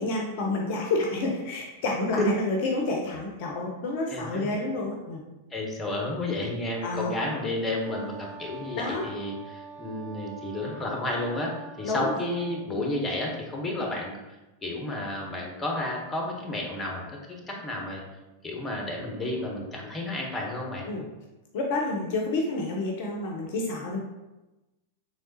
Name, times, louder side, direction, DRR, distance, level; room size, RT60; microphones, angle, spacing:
voice 1, 0.0-5.2 6.8-7.1 8.7-9.1 11.8-12.2 20.9-21.0 21.5-24.0, left 2 dB, 50° left, 0 dB, 0.5 m, -29 dB
voice 2, 4.1-4.5 5.5-11.5 11.8-14.1 14.6-17.0 17.3-18.0 18.4-20.9, left 2 dB, 15° left, -1 dB, 0.8 m, -31 dB
Wind instrument woodwind instrument, 7.8-12.7, right 4 dB, 35° right, 0.5 m, -44 dB
3.5 x 3.1 x 2.6 m, 1.0 s
figure-of-eight pair, 90°, 0 cm